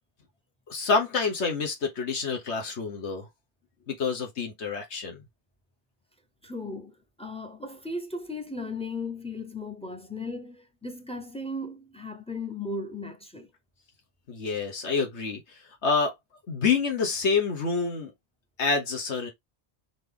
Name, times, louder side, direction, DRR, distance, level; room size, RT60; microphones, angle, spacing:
voice 1, 0.7-3.3 3.9-5.2 14.3-16.1 16.5-18.1 18.6-19.3, left 4 dB, 85° left, 1.5 m, -27 dB
voice 2, 6.4-13.5, left 2 dB, 10° left, 0.5 m, -36 dB
4.1 x 3.0 x 3.4 m
omnidirectional pair, 1.1 m